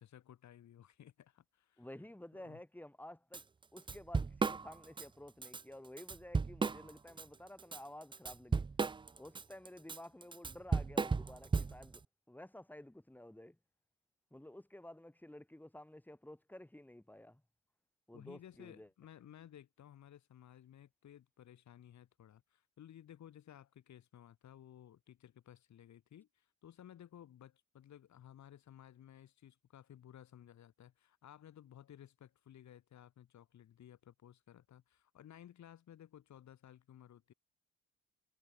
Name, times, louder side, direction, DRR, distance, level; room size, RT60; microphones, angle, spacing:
voice 1, 0.0-1.9 2.3-2.6 18.1-37.3, left 10 dB, 65° left, 5.5 m, -57 dB
voice 2, 1.8-3.4 3.7-8.6 9.2-13.6 14.3-17.4 18.1-18.9, left 1 dB, 5° left, 3.5 m, -52 dB
Drum kit / Drum, 3.3-3.4 3.8-5.1 5.4-5.6 6.0-7.2 7.6-12.0, right 4 dB, 15° right, 0.4 m, -35 dB
cardioid pair, 90°, 30 cm